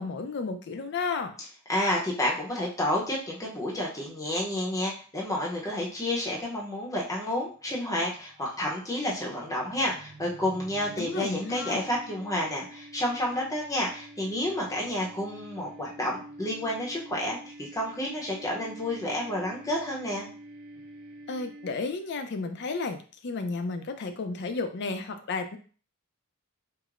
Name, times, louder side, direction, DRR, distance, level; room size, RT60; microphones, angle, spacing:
voice 1, 0.0-1.3 11.0-11.8 21.3-25.6, left 4 dB, 55° left, 8 dB, 0.4 m, -33 dB
voice 2, 1.7-20.3, left 1 dB, 15° left, -3 dB, 0.7 m, -30 dB
sound 1, 8.2-22.2, right 1 dB, 25° right, 0.6 m, -48 dB
4.6 x 2.1 x 2.4 m, 0.39 s
head